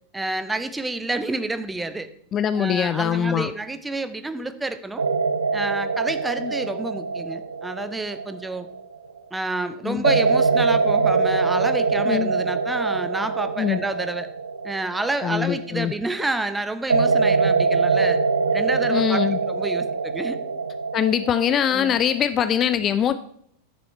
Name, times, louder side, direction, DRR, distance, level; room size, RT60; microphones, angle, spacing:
voice 1, 0.1-2.1 2.5-5.1 5.5-8.7 9.3-14.3 14.6-18.2 18.5-20.4 21.7-22.0, right 2 dB, 10° right, 11 dB, 0.8 m, -29 dB
voice 2, 2.3-3.5 6.4-6.5 9.8-10.0 12.1-12.3 13.6-13.8 15.2-15.9 18.9-19.4 20.9-23.1, left 9 dB, 30° left, 13 dB, 0.4 m, -22 dB
sound 1, 5.0-9.2 10.0-16.0 16.9-22.2, right 4 dB, 75° right, 0.7 m, -23 dB
10.5 x 7.1 x 4.5 m, 0.67 s
figure-of-eight pair, 90°, 0 cm